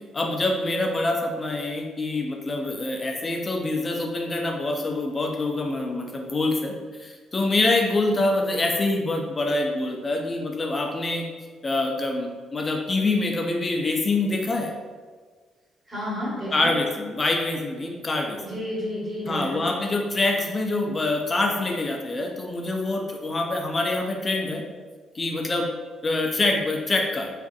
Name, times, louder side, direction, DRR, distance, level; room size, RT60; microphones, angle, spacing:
voice 1, 0.1-6.7 7.0-11.3 11.6-14.7 16.5-18.4 19.3-24.6 25.1-25.7 26.0-27.3, left 2 dB, 30° left, 2 dB, 0.4 m, -25 dB
voice 2, 15.9-16.7 18.4-19.7, equal, 20° right, -7 dB, 1.2 m, -31 dB
2.5 x 2.5 x 2.3 m, 1.5 s
cardioid pair, 90°, 0 cm